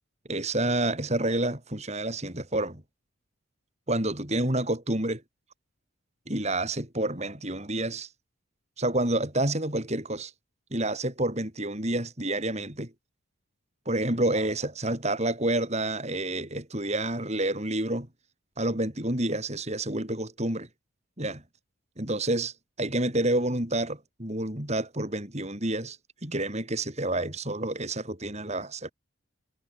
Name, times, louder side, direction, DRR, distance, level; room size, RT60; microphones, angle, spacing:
voice 1, 0.3-2.8 3.9-5.2 6.3-8.1 8.8-10.3 10.7-12.9 13.9-18.1 18.6-20.7 21.2-21.4 22.0-26.0 26.2-28.9, right 1 dB, 30° right, 4.2 m, -29 dB
head